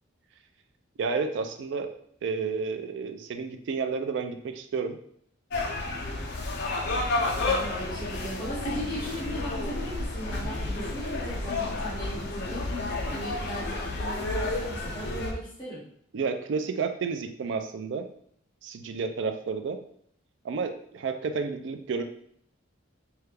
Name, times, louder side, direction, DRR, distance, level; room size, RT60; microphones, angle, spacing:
voice 1, 1.0-1.9 2.2-5.0 16.1-18.0 18.6-19.8 20.4-22.0, right 5 dB, 65° right, 7 dB, 0.3 m, -31 dB
sound 1, 5.5-15.3, left 2 dB, 55° left, 0.5 m, -31 dB
voice 2, 7.4-12.7 13.1-15.9, right 1 dB, 20° left, -9 dB, 1.3 m, -37 dB
3.2 x 2.3 x 3.3 m, 0.66 s
head